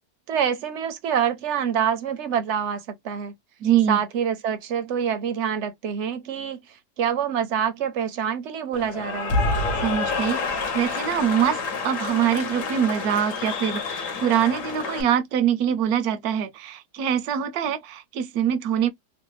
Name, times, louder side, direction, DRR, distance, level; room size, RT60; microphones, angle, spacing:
voice 1, 0.3-3.3 3.9-9.4, right 8 dB, 65° right, 0.7 m, -26 dB
voice 2, 3.6-4.0 9.8-18.9, right 9 dB, 80° right, 1.1 m, -24 dB
Cheering / Applause, 8.7-15.0, left 3 dB, 60° left, 1.2 m, -28 dB
3.1 x 2.2 x 3.0 m
omnidirectional pair, 1.6 m